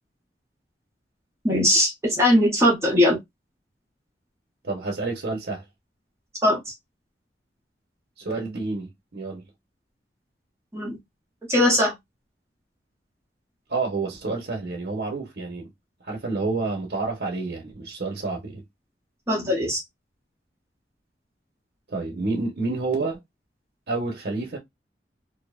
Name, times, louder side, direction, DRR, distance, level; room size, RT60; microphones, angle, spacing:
voice 1, 1.4-3.2 6.4-6.6 10.7-11.0 11.5-11.9 19.3-19.8, left 1 dB, 15° right, 0.7 m, -20 dB
voice 2, 4.6-5.6 8.2-9.4 13.7-15.7 16.0-18.6 21.9-23.2 23.9-24.6, right 3 dB, 65° right, 0.8 m, -29 dB
2.6 x 2.0 x 2.3 m
head